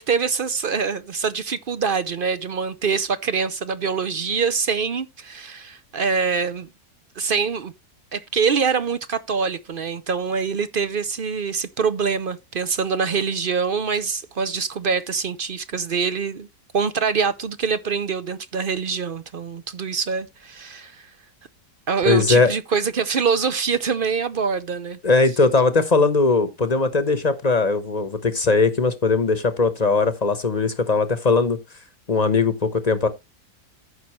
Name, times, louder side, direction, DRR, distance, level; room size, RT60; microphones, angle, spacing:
voice 1, 0.0-6.7 7.2-7.7 8.1-16.5 16.7-21.1 21.9-25.0, right 5 dB, 55° right, 0.6 m, -24 dB
voice 2, 22.0-22.5 25.0-31.6 32.1-33.1, left 3 dB, 30° left, 0.9 m, -19 dB
14.5 x 5.7 x 3.1 m
omnidirectional pair, 1.7 m